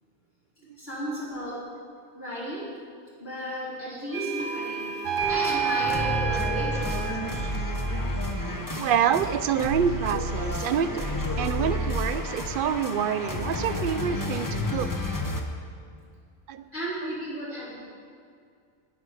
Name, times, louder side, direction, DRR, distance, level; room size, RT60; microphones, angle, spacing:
voice 1, 0.8-1.6 2.1-2.7 3.2-7.1 16.7-17.8, equal, 55° left, -9 dB, 3.5 m, -34 dB
sound 1, 4.1-9.4, right 3 dB, 10° right, 1.6 m, -35 dB
sound 2, 5.0-8.2, right 10 dB, 85° right, 0.9 m, -31 dB
sound 3, 5.2-15.4, left 1 dB, 20° left, 0.9 m, -30 dB
voice 2, 8.8-14.9 16.5-16.7 17.0-17.1, right 8 dB, 60° right, 12 dB, 0.6 m, -27 dB
13.5 x 10.5 x 4.9 m, 2.3 s
omnidirectional pair, 1.2 m